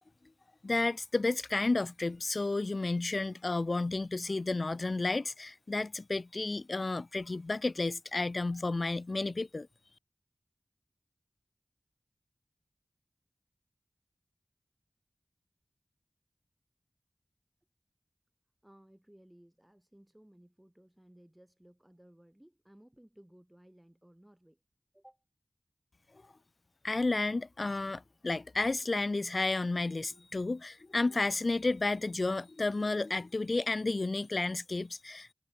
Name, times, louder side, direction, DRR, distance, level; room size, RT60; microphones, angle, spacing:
voice 1, 0.6-9.7 26.8-35.3, left 3 dB, 55° left, 0.5 m, -32 dB
voice 2, 18.6-24.6 24.9-25.2 34.2-34.3, right 1 dB, 10° right, 2.6 m, -59 dB
wide cardioid pair, 55°, 0 cm